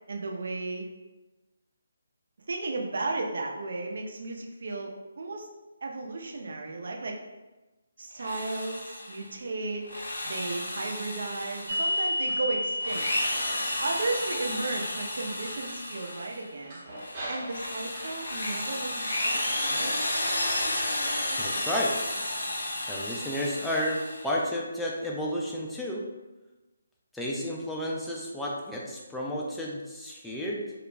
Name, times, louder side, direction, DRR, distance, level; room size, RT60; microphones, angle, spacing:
voice 1, 0.1-0.9 2.5-5.5 5.8-7.2 8.0-9.9 10.2-13.1 13.8-16.8 17.3-20.0, right 3 dB, 60° right, 1 dB, 0.5 m, -34 dB
Drill, 8.1-9.3 9.8-12.2 12.7-16.4 16.9-24.4, left 1 dB, 65° left, 0.7 m, -32 dB
sound 1, 11.7-18.6 19.1-19.9 20.4-21.2, equal, 35° right, 0.7 m, -35 dB
voice 2, 21.4-22.2 22.9-26.1 27.1-30.7, equal, 5° left, -4 dB, 0.4 m, -32 dB
2.3 x 2.0 x 3.1 m, 1.1 s
figure-of-eight pair, 155°, 0 cm